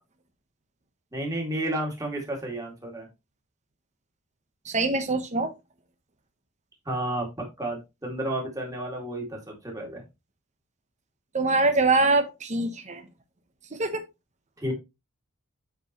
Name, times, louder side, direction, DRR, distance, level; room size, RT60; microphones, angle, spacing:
voice 1, 1.1-3.1 6.9-10.0 14.6-14.7, right 1 dB, 15° right, 2.2 m, -31 dB
voice 2, 4.7-5.5 11.3-13.0 13.7-14.0, right 3 dB, 35° right, 1.0 m, -24 dB
8.5 x 4.6 x 3.0 m
head